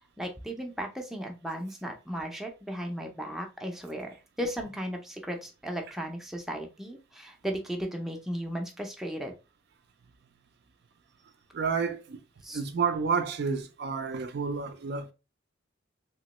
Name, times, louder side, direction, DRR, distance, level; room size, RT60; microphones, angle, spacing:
voice 1, 0.2-4.1 4.4-9.3 12.4-12.6, equal, ahead, 0.5 m, -35 dB
voice 2, 11.5-12.2 12.5-15.1, right 5 dB, 55° right, 0.4 m, -30 dB
2.9 x 2.9 x 2.9 m
head